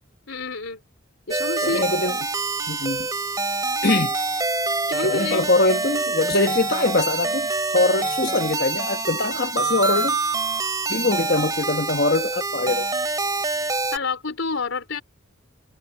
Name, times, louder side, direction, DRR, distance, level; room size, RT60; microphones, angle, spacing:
voice 1, 0.3-0.8 1.3-1.9 4.9-5.5 8.0-8.3 13.9-15.0, left 4 dB, 75° left, 3.6 m, -28 dB
sound 1, 1.3-14.0, right 3 dB, 20° right, 2.6 m, -26 dB
voice 2, 1.6-2.2 2.7-3.1 3.8-4.2 5.0-7.5 7.7-10.2 10.9-12.9, left 2 dB, 50° left, 1.6 m, -22 dB
head